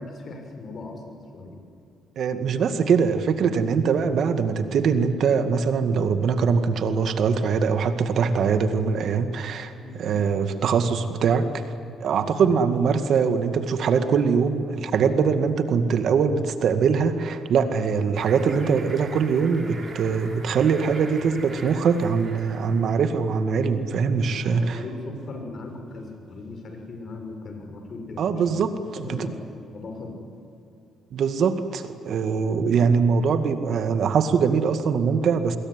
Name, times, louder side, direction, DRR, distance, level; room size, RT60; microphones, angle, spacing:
voice 1, 0.0-1.6 9.8-10.0 12.4-12.5 24.2-29.3 29.7-30.2, left 3 dB, 50° left, 4 dB, 6.4 m, -38 dB
voice 2, 2.2-11.6 12.0-24.8 28.2-29.3 31.1-35.6, right 6 dB, 65° right, 9 dB, 2.0 m, -22 dB
sound 1, 18.1-23.2, right 3 dB, 40° right, 5.2 m, -42 dB
26.0 x 21.5 x 9.9 m, 2.8 s
cardioid pair, 90°, 0 cm